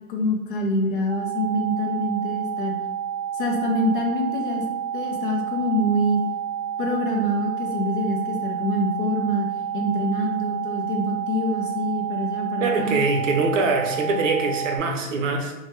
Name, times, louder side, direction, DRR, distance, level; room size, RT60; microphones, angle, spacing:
voice 1, 0.1-2.7 3.3-4.6 4.9-6.2 6.8-9.5 9.7-13.0, equal, 40° left, 1 dB, 0.5 m, -25 dB
sound 1, 1.1-14.8, right 9 dB, 20° left, 0.9 m, -30 dB
voice 2, 12.6-15.5, right 3 dB, 60° right, 3 dB, 0.6 m, -23 dB
2.8 x 2.2 x 3.1 m, 1.0 s
hypercardioid pair, 150°, 43 cm